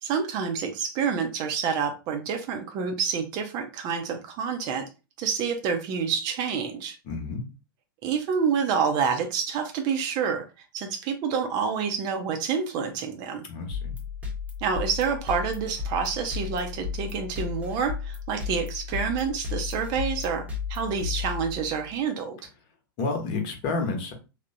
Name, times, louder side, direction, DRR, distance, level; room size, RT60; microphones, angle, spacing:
voice 1, 0.0-4.8 5.2-7.0 8.0-10.4 10.7-13.4 14.6-22.4, right 6 dB, 35° right, 0.5 m, -28 dB
voice 2, 7.0-7.5 13.5-14.0 23.0-24.1, left 3 dB, 40° left, 0.9 m, -30 dB
sound 1, 13.7-21.9, left 6 dB, 10° right, 0.8 m, -34 dB
3.3 x 2.1 x 2.6 m
figure-of-eight pair, 95°, 12 cm